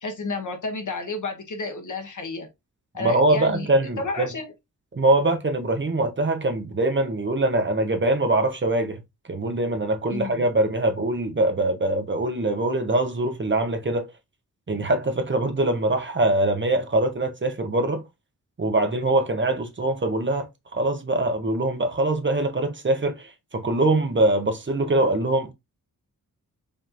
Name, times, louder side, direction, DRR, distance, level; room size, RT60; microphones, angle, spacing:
voice 1, 0.0-2.5 2.9-3.7 4.0-4.5 10.1-10.5, left 3 dB, 60° left, 1.2 m, -31 dB
voice 2, 3.0-4.3 4.9-9.0 9.3-14.1 14.7-18.0 18.6-20.5 20.7-23.3 23.5-25.5, right 2 dB, 35° right, 0.8 m, -23 dB
5.1 x 3.0 x 2.5 m
wide cardioid pair, 90°, 34 cm